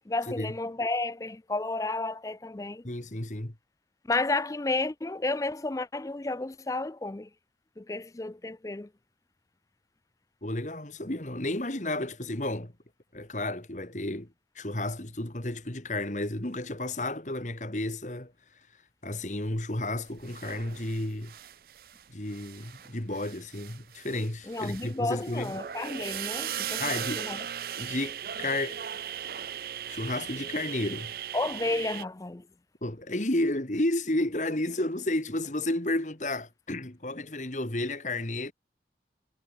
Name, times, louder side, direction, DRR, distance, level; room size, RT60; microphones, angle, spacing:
voice 1, 0.1-2.9 4.0-7.3 7.8-8.9 24.5-27.5 31.3-32.5, left 2 dB, 20° left, 0.4 m, -32 dB
voice 2, 2.8-3.5 10.4-12.7 13.1-14.3 14.6-18.3 19.0-21.3 22.1-25.5 26.8-27.3 27.8-28.8 29.9-31.1 32.8-38.5, left 1 dB, 45° left, 2.1 m, -32 dB
sound 1, 20.2-22.0 22.3-32.0, right 9 dB, 55° right, 0.5 m, -38 dB
head